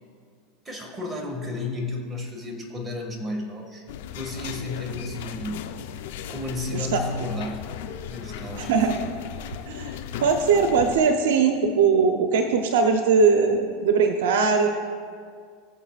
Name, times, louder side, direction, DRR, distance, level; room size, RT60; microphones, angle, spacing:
voice 1, 0.7-3.9 4.1-5.7 6.3-7.6 8.1-9.0, left 2 dB, 15° right, 0 dB, 1.9 m, -32 dB
sound 1, 3.9-11.0, left 9 dB, 75° left, 0.7 m, -37 dB
voice 2, 6.7-7.0 8.6-8.9 9.7-14.7, right 5 dB, 80° right, 5 dB, 0.7 m, -21 dB
21.0 x 7.0 x 2.5 m, 2.2 s
supercardioid pair, 120°, 0 cm